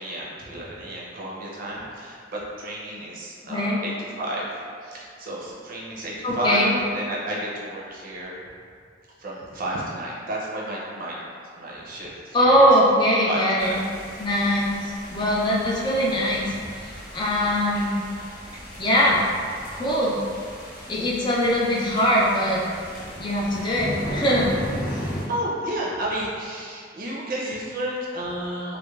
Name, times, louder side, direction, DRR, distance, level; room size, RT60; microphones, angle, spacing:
voice 1, 0.0-4.5 4.8-8.4 9.2-11.2 11.6-12.7 13.2-13.8 24.7-28.8, right 1 dB, 50° right, -4 dB, 0.5 m, -31 dB
voice 2, 3.5-3.8 6.2-6.7 12.3-13.7 14.2-14.8 15.1-16.5 17.1-18.0 18.8-19.2 19.7-20.2 20.9-22.6 23.2-24.5, equal, 25° left, -5 dB, 0.3 m, -21 dB
sound 1, 13.6-25.3, equal, 55° left, 0.9 m, -36 dB
2.9 x 2.1 x 2.3 m, 2.2 s
head